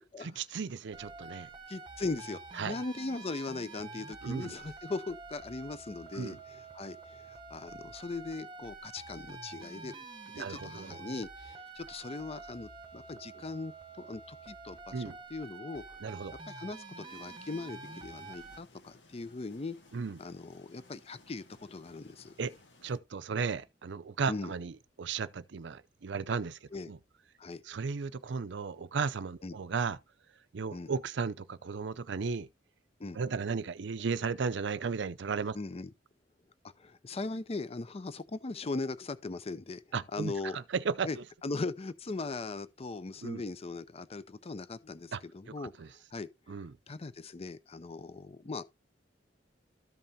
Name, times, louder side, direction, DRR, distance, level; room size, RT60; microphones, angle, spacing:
voice 1, 0.2-1.5 2.6-2.8 4.2-4.6 6.1-6.4 10.3-11.0 14.9-15.2 16.0-16.3 19.9-20.2 22.4-22.5 22.8-27.0 27.6-30.0 30.5-32.5 33.1-35.6 39.9-41.2 43.2-43.4 45.1-45.2 45.6-45.9 46.5-46.7, right 5 dB, 70° right, 0.5 m, -35 dB
sound 1, 0.9-18.6, right 3 dB, 25° right, 0.9 m, -48 dB
voice 2, 1.7-9.9 10.3-16.0 16.5-19.8 20.2-22.3 24.3-24.5 26.7-26.9 27.4-27.6 29.4-29.6 30.7-30.9 33.0-33.2 35.5-35.9 36.8-39.8 40.1-40.6 41.0-41.2 41.4-46.6 46.9-48.6, left 3 dB, 35° left, 0.6 m, -39 dB
sound 2, 17.1-23.0, left 2 dB, 80° left, 1.7 m, -60 dB
13.5 x 5.4 x 2.8 m
head